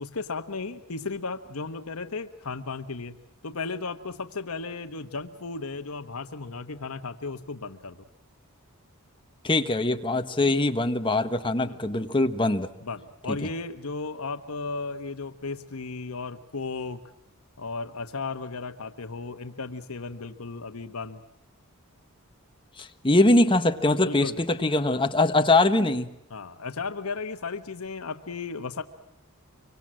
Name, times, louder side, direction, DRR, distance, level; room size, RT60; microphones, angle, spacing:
voice 1, 0.0-3.1 3.4-8.0 11.7-11.8 12.8-17.0 17.6-21.2 24.0-24.4 26.3-28.8, left 4 dB, 80° left, 8 dB, 1.2 m, -35 dB
voice 2, 9.4-12.7 13.3-13.4 22.8-26.1, left 2 dB, 20° left, 7 dB, 1.3 m, -22 dB
25.5 x 24.5 x 7.6 m, 0.81 s
head